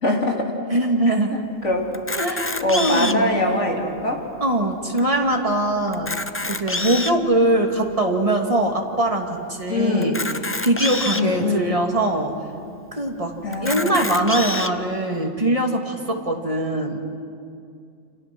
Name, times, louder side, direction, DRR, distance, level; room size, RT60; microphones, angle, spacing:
voice 1, 0.0-0.6 1.1-1.9 2.6-4.3 9.7-10.2 11.1-11.7 13.4-14.1, left 2 dB, 65° left, 0 dB, 3.4 m, -23 dB
voice 2, 0.7-1.3 2.2-3.3 4.4-6.1 6.5-10.1 10.6-12.3 12.9-13.3 13.6-17.0, right 1 dB, 25° right, 1 dB, 2.6 m, -22 dB
Camera, 1.9-3.3 4.0-4.1 4.3-4.4 5.0-5.1 5.9-7.2 7.9-8.0 10.0-11.2 12.0-12.1 12.3-12.4 13.5-14.7, left 2 dB, 15° left, 0.5 m, -27 dB
29.0 x 28.5 x 6.2 m, 2.4 s
omnidirectional pair, 1.3 m